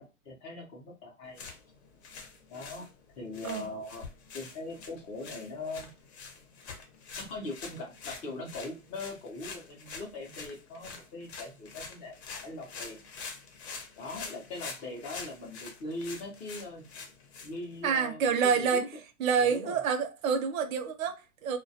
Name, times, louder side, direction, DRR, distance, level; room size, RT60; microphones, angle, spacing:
voice 1, 0.0-1.4 2.5-2.9 3.2-4.0 4.3-5.9 7.1-13.1 14.0-16.8 17.4-18.9 19.3-19.8, left 2 dB, 20° left, 0.5 m, -41 dB
sound 1, 1.2-18.0, left 5 dB, 50° left, 0.8 m, -46 dB
voice 2, 17.8-18.9 19.2-21.6, right 6 dB, 70° right, 0.7 m, -28 dB
2.2 x 2.1 x 2.7 m
hypercardioid pair, 140°, 42 cm